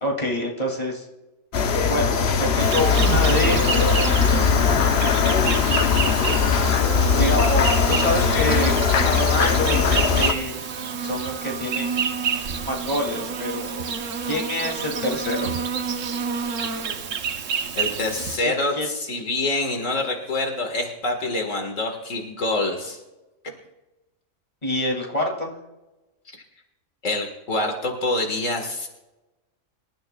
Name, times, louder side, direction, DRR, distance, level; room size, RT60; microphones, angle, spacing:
voice 1, 0.0-1.1 1.9-3.7 4.0-5.8 6.6-6.8 7.2-10.6 11.0-11.9 12.7-13.8 14.2-15.5 18.4-18.9 24.6-25.5, left 1 dB, 30° left, 0 dB, 2.9 m, -27 dB
sound 1, 1.5-10.3, left 6 dB, 55° left, 1.0 m, -20 dB
Insect, 2.6-18.4, right 6 dB, 75° right, 1.3 m, -28 dB
voice 2, 17.8-23.0 26.3-26.4 27.0-28.9, left 2 dB, 80° left, 3 dB, 2.1 m, -26 dB
25.5 x 13.0 x 2.3 m, 1.1 s
omnidirectional pair, 1.3 m